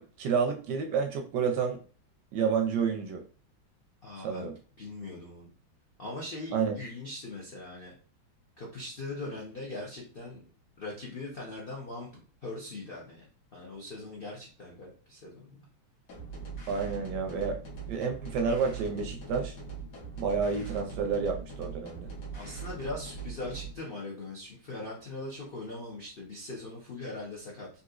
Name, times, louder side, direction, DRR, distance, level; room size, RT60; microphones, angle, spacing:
voice 1, 0.0-1.8 2.3-3.2 4.2-4.5 6.5-6.7 16.7-17.6 17.9-19.6 20.2-22.1, right 5 dB, 75° right, 4 dB, 1.0 m, -29 dB
voice 2, 4.0-5.5 6.0-7.9 8.6-10.4 10.8-13.3 13.5-15.6 22.3-27.7, left 2 dB, 80° left, -3 dB, 0.5 m, -41 dB
sound 1, 16.1-23.8, right 5 dB, 55° left, 1.2 m, -41 dB
4.0 x 2.6 x 2.4 m, 0.40 s
omnidirectional pair, 2.1 m